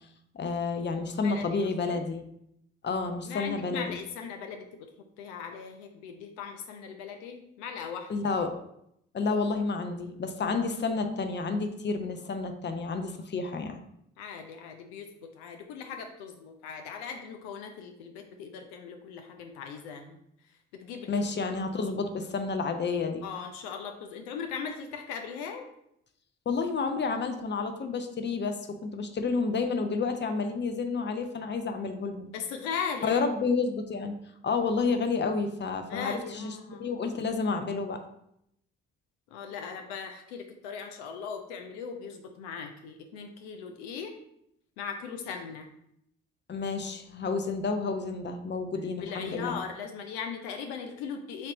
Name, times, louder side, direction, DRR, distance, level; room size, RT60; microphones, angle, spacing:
voice 1, 0.3-2.2 2.8-3.9 8.1-8.6 9.1-13.8 21.1-23.3 26.5-32.3 33.0-34.2 34.4-38.0 46.5-49.6, left 4 dB, 35° left, 6 dB, 0.7 m, -30 dB
voice 2, 1.2-1.6 1.9-2.0 3.3-4.9 5.2-8.1 14.2-20.2 20.7-21.2 23.2-25.7 32.3-33.3 35.9-37.0 39.3-44.1 44.8-45.7 48.7-51.5, left 6 dB, 80° left, 5 dB, 0.5 m, -39 dB
4.3 x 3.2 x 3.9 m, 0.76 s
hypercardioid pair, 45°, 33 cm